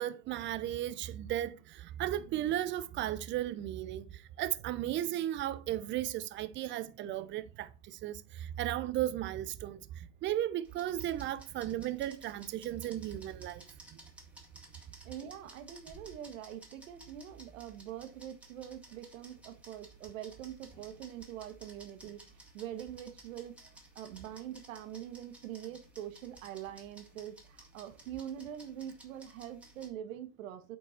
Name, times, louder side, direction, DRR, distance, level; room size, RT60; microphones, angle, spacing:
voice 1, 0.0-13.6 13.9-14.0, right 12 dB, 30° right, 0.6 m, -35 dB
sound 1, 10.6-29.9, right 2 dB, 5° right, 1.9 m, -56 dB
voice 2, 15.0-23.6 23.9-30.8, right 10 dB, 70° right, 1.5 m, -44 dB
8.3 x 4.6 x 4.3 m
hypercardioid pair, 120°, 41 cm